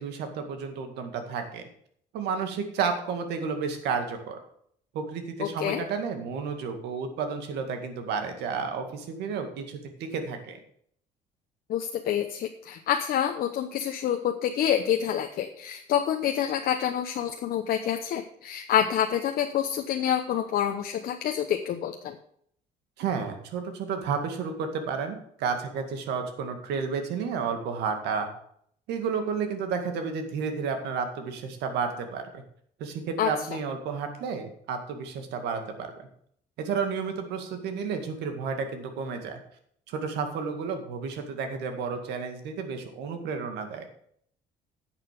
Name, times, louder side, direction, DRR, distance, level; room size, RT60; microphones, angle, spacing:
voice 1, 0.0-1.6 2.1-4.4 4.9-10.6 23.0-28.3 28.9-32.4 32.8-36.1 36.6-39.4 39.9-43.9, right 5 dB, 85° right, 6 dB, 2.0 m, -31 dB
voice 2, 5.4-5.8 11.7-22.2 33.2-33.3, left 9 dB, 65° left, 5 dB, 0.9 m, -27 dB
10.5 x 6.5 x 6.8 m, 0.65 s
cardioid pair, 110°, 17 cm